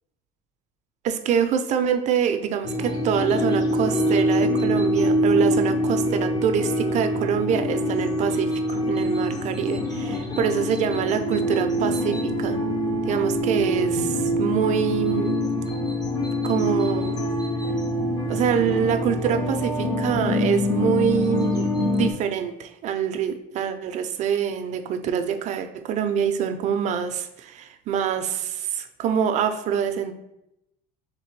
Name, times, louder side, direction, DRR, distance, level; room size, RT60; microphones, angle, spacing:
voice 1, 1.0-12.6 13.1-15.5 16.4-17.2 18.3-30.1, right 8 dB, 45° right, 8 dB, 0.5 m, -25 dB
sound 1, 2.6-22.1, equal, 25° left, 0.7 m, -24 dB
3.4 x 3.3 x 4.5 m, 0.83 s
cardioid pair, 135°, 16 cm